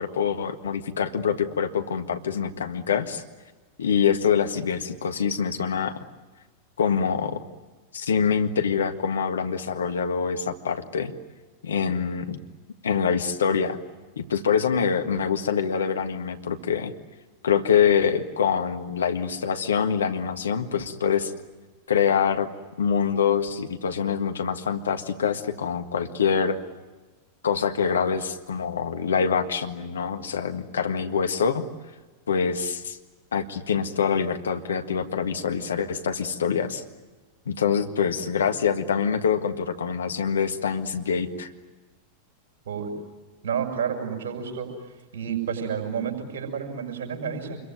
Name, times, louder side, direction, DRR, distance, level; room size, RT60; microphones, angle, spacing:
voice 1, 0.0-3.2 3.8-6.0 6.8-7.4 7.9-11.1 11.6-12.4 12.8-13.8 14.2-16.9 17.4-21.3 21.9-22.5 22.8-26.6 27.4-31.6 32.3-33.0 33.3-36.8 37.5-41.5, left 7 dB, 70° left, 7 dB, 1.7 m, -25 dB
voice 2, 43.4-44.7 45.1-47.6, right 7 dB, 55° right, 4 dB, 6.5 m, -30 dB
27.5 x 22.5 x 9.3 m, 1.2 s
figure-of-eight pair, 90°, 0 cm